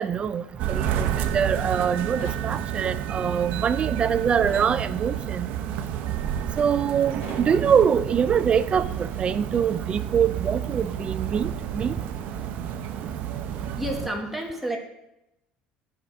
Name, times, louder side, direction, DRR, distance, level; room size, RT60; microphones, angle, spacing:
voice 1, 0.0-5.5 6.6-11.9, right 7 dB, 35° right, 14 dB, 0.4 m, -24 dB
sound 1, 0.6-14.1, right 10 dB, 65° right, 0.7 m, -30 dB
sound 2, 2.2-2.5 4.5-4.8 7.2-7.5, left 2 dB, 75° left, 2.1 m, -40 dB
voice 2, 13.8-14.8, right 1 dB, 5° right, 0 dB, 1.4 m, -30 dB
8.0 x 4.8 x 6.4 m, 0.89 s
cardioid pair, 120°, 3 cm